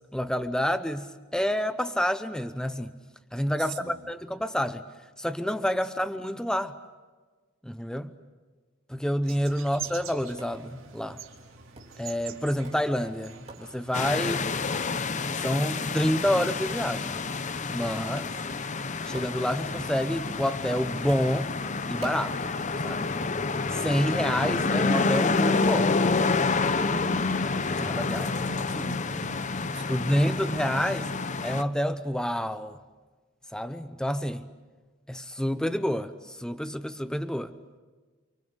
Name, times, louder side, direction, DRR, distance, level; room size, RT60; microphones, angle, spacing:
voice 1, 0.1-2.9 3.3-4.8 5.2-6.7 7.6-8.1 8.9-11.2 12.0-14.5 15.4-17.2 17.7-18.3 19.1-21.5 21.9-22.5 22.8-23.3 23.7-25.9 27.8-28.3 28.8-29.0 29.9-31.1 31.4-32.8 33.5-34.4 35.1-37.5, equal, 5° left, 0.8 m, -28 dB
voice 2, 3.6-4.1 9.7-9.8 28.2-30.4, right 6 dB, 60° right, 2.2 m, -46 dB
sound 1, 9.2-14.5, right 8 dB, 75° right, 4.1 m, -44 dB
Tap, 9.6-26.3, right 2 dB, 30° right, 3.7 m, -53 dB
sound 2, 13.9-31.6, left 3 dB, 35° left, 0.8 m, -28 dB
29.5 x 24.0 x 8.1 m
head